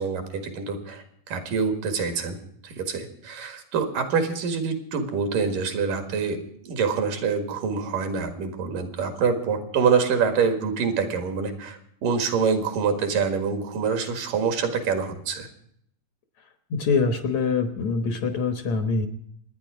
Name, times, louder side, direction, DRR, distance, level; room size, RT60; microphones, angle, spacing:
voice 1, 0.0-2.4 2.6-15.5, right 5 dB, 70° right, 6 dB, 3.3 m, -26 dB
voice 2, 16.7-19.1, left 4 dB, 60° left, 7 dB, 2.1 m, -24 dB
26.5 x 10.0 x 4.9 m, 0.70 s
omnidirectional pair, 4.1 m